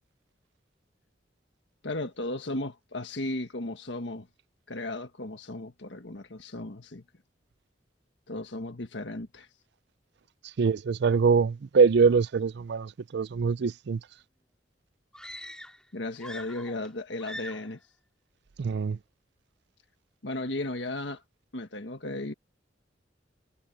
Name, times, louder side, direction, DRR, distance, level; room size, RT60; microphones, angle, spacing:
voice 1, 1.8-4.3 4.7-7.0 8.3-9.5 15.9-17.8 20.2-21.2 21.5-22.3, left 2 dB, 70° left, 1.6 m, -35 dB
voice 2, 10.6-14.0 18.6-19.0, right 5 dB, 65° right, 0.4 m, -23 dB
sound 1, 15.1-15.9 16.2-16.9 17.2-17.7, left 1 dB, 5° left, 4.8 m, -43 dB
head